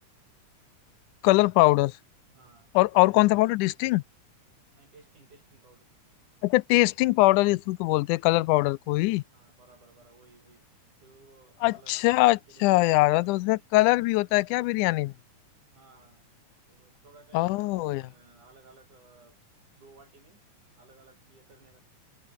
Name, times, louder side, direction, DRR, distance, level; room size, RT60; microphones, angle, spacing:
voice 1, 1.2-1.9 2.8-4.0 6.4-9.2 11.6-15.1 17.3-18.0, left 20 dB, 85° left, 2.0 m, -22 dB
voice 2, 2.3-3.6 4.7-5.9 9.3-10.7 11.0-13.6 15.7-16.3 16.7-19.4 19.8-20.4 20.8-21.8, right 3 dB, 75° right, 9.4 m, -57 dB
omnidirectional pair, 3.5 m